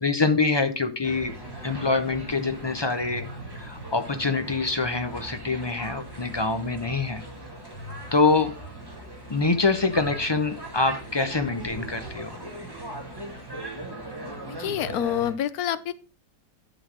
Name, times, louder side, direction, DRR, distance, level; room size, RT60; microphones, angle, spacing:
voice 1, 0.0-1.3 1.6-3.3 3.6-7.2 8.1-8.5 9.3-12.4, left 3 dB, 35° left, 9 dB, 0.4 m, -25 dB
sound 1, 1.0-15.3, right 1 dB, 15° right, 2.2 m, -39 dB
voice 2, 14.6-15.9, left 10 dB, 85° left, 16 dB, 1.2 m, -27 dB
11.0 x 4.1 x 6.1 m, 0.36 s
omnidirectional pair, 1.5 m